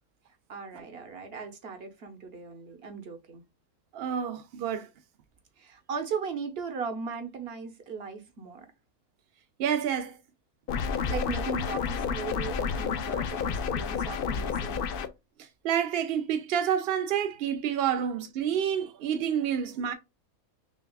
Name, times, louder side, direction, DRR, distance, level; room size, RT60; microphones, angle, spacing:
voice 1, 0.5-3.4 5.6-8.7 10.9-15.0, right 5 dB, 50° right, 1.1 m, -38 dB
voice 2, 3.9-4.9 9.6-10.2 15.6-19.9, right 9 dB, 70° right, 0.6 m, -28 dB
sound 1, 10.7-15.1, left 6 dB, 70° left, 0.5 m, -30 dB
5.7 x 2.3 x 2.3 m
omnidirectional pair, 1.5 m